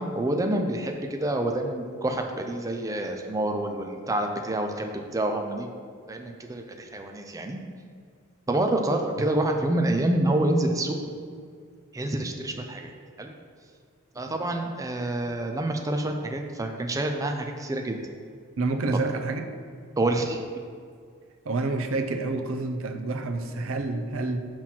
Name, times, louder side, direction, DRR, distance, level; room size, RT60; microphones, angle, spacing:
voice 1, 0.0-5.7 6.1-7.6 8.5-11.0 11.9-12.9 13.2-13.3 14.2-18.0 20.0-20.4, right 1 dB, 15° right, 3 dB, 0.4 m, -27 dB
voice 2, 18.6-19.5 21.4-24.4, right 3 dB, 65° right, 6 dB, 0.6 m, -28 dB
5.9 x 4.3 x 6.1 m, 2.2 s
head